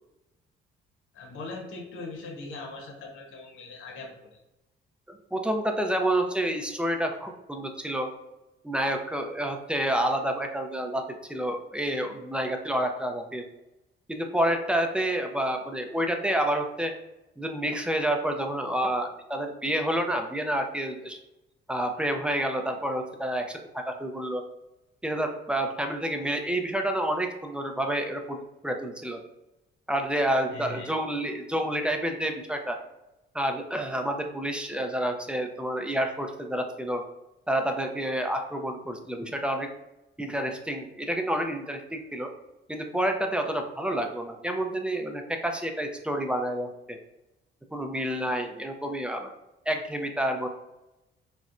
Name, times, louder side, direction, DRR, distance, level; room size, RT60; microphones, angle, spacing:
voice 1, 1.1-4.4 30.5-30.9, left 3 dB, 85° left, 2 dB, 0.8 m, -40 dB
voice 2, 5.1-8.1 8.6-11.0 11.3-13.5 14.1-16.9 17.4-21.2 21.7-24.4 25.0-29.2 29.9-32.8 33.3-37.0 37.5-39.7 40.2-42.3 42.7-47.0 47.7-49.3 49.7-50.5, right 1 dB, 5° right, 4 dB, 0.4 m, -29 dB
3.9 x 2.1 x 2.5 m, 0.97 s
cardioid pair, 90°, 20 cm